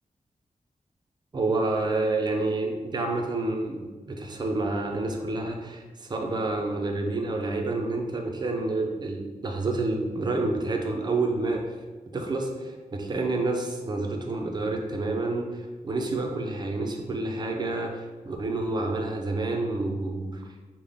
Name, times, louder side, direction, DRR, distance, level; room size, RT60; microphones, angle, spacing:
voice 1, 1.3-11.6 12.1-20.4, right 2 dB, 30° right, 3 dB, 0.4 m, -29 dB
3.6 x 2.0 x 3.3 m, 1.3 s
wide cardioid pair, 130°, 14 cm